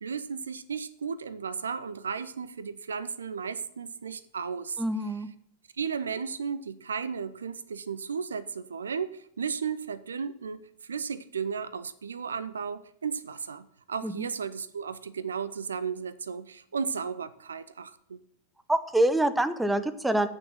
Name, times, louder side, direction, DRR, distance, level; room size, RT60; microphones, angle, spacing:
voice 1, 0.0-4.8 5.8-18.2, right 6 dB, 70° right, 15 dB, 0.6 m, -34 dB
voice 2, 4.8-5.3 14.0-14.3 18.7-20.3, right 1 dB, 5° right, 11 dB, 0.7 m, -25 dB
8.5 x 6.4 x 7.3 m, 0.67 s
figure-of-eight pair, 90°, 0 cm